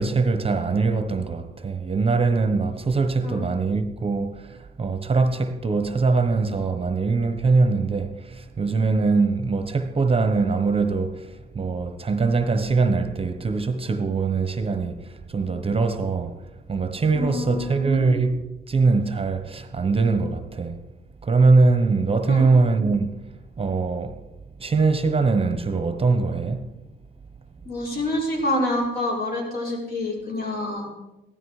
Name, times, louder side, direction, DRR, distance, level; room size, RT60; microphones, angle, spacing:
voice 1, 0.0-18.4 18.7-20.9 21.2-23.1 23.6-24.2 24.6-26.7, right 4 dB, 30° right, 1.0 m, -22 dB
voice 2, 17.1-18.1 22.3-22.5 27.7-30.9, left 1 dB, 50° left, 5.4 m, -27 dB
15.5 x 12.5 x 4.9 m
cardioid pair, 90°, 20 cm